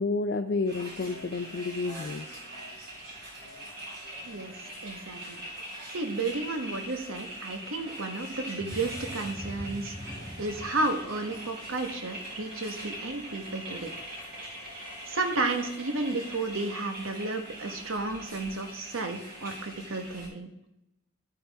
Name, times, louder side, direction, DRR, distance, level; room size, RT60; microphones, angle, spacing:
voice 1, 0.0-2.4, left 3 dB, 50° left, 5 dB, 0.4 m, -30 dB
sound 1, 0.7-20.3, right 1 dB, 50° right, 4.1 m, -42 dB
voice 2, 4.8-5.4 5.9-13.9 15.1-20.5, right 3 dB, 70° right, 5 dB, 1.2 m, -32 dB
sound 2, 8.5-14.0 14.4-14.6 15.1-15.2, equal, 5° right, 2.9 m, -44 dB
11.5 x 8.7 x 3.5 m, 0.86 s
head